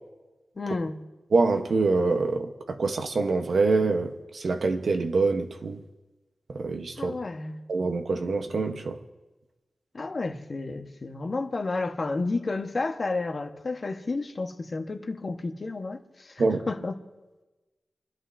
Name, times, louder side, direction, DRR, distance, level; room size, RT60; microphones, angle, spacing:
voice 1, 0.6-1.0 7.0-7.6 9.9-16.9, left 3 dB, 55° left, 1.4 m, -31 dB
voice 2, 1.3-5.8 6.5-7.2 7.7-9.0 16.4-16.6, right 3 dB, 75° right, 1.2 m, -25 dB
29.0 x 11.5 x 2.8 m
cardioid pair, 50°, 0 cm